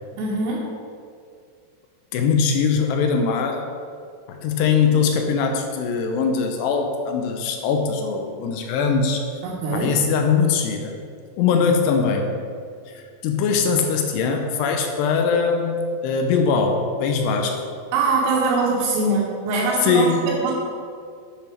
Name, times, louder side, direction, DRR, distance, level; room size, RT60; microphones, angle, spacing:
voice 1, 0.2-0.7 9.4-9.9 17.9-20.5, right 3 dB, 85° right, -7 dB, 3.9 m, -22 dB
voice 2, 2.1-3.7 4.3-9.4 9.7-11.0 11.4-12.4 12.9-17.6 19.8-20.3, left 5 dB, 80° left, 4 dB, 2.4 m, -21 dB
10.5 x 8.0 x 4.6 m, 2.2 s
omnidirectional pair, 5.7 m